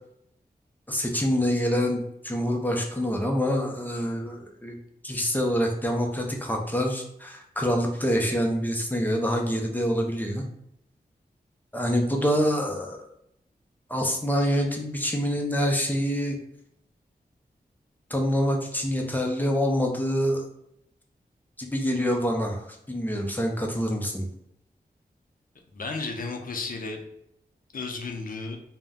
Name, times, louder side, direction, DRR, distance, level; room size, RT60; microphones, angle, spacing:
voice 1, 0.9-4.8 5.0-10.4 11.7-13.1 13.9-16.4 18.1-20.4 21.6-24.3, equal, 10° left, 1 dB, 0.6 m, -26 dB
voice 2, 25.7-27.0 27.7-28.6, left 3 dB, 60° left, 3 dB, 0.5 m, -33 dB
2.5 x 2.1 x 3.5 m, 0.76 s
wide cardioid pair, 75°, 16 cm